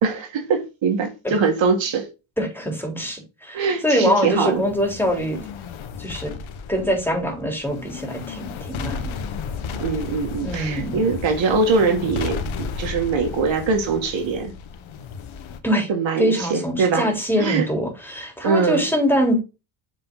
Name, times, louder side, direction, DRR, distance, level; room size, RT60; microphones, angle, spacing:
voice 1, 0.0-2.1 3.5-4.6 9.7-14.5 15.9-17.1 17.4-17.7 18.4-18.8, right 4 dB, 65° right, 2.0 m, -22 dB
voice 2, 2.4-5.4 6.0-6.3 6.7-8.4 8.7-9.2 10.4-11.0 15.6-15.9 16.2-19.4, equal, 5° left, 3.7 m, -23 dB
sound 1, 4.3-15.6, left 6 dB, 75° left, 1.3 m, -33 dB
7.5 x 4.8 x 3.7 m
cardioid pair, 70°, 48 cm